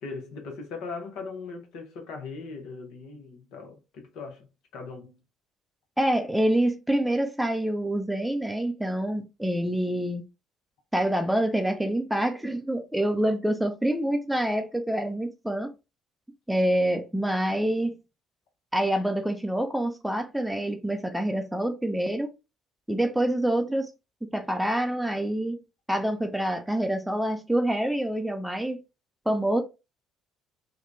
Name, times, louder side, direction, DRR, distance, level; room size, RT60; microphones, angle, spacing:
voice 1, 0.0-5.2, left 4 dB, 60° left, 1.0 m, -39 dB
voice 2, 6.0-10.2 10.9-15.7 16.5-18.0 18.7-22.3 22.9-23.9 24.2-25.6 25.9-28.8 29.3-29.6, right 1 dB, 5° right, 0.6 m, -26 dB
3.7 x 2.3 x 3.2 m
figure-of-eight pair, 50°, 0 cm